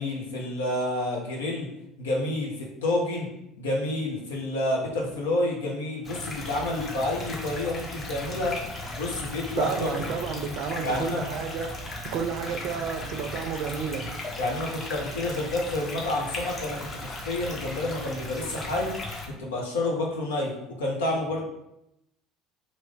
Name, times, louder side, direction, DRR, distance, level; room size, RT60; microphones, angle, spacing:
voice 1, 0.0-1.7 2.0-3.3 3.6-8.6 8.9-9.9 10.8-11.2 14.4-18.9 19.3-21.5, left 2 dB, 75° left, -2 dB, 0.8 m, -29 dB
sound 1, 6.0-19.3, left 2 dB, 35° left, 0.9 m, -37 dB
voice 2, 9.6-11.7 12.1-14.1, right 6 dB, 60° right, 6 dB, 0.4 m, -31 dB
3.0 x 2.6 x 3.5 m, 0.85 s
figure-of-eight pair, 65°, 0 cm